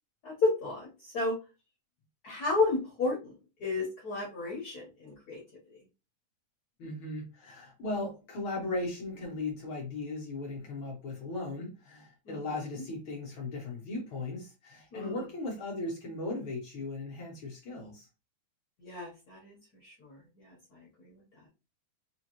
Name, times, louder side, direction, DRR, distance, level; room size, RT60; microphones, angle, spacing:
voice 1, 0.2-1.3 2.2-3.3 3.6-5.4 12.3-12.4 14.9-15.2 18.8-19.6 19.8-21.2, left 3 dB, 85° left, -3 dB, 0.8 m, -32 dB
voice 2, 6.8-18.1, left 2 dB, 60° left, -2 dB, 1.5 m, -37 dB
5.0 x 2.5 x 2.9 m, 0.29 s
omnidirectional pair, 3.4 m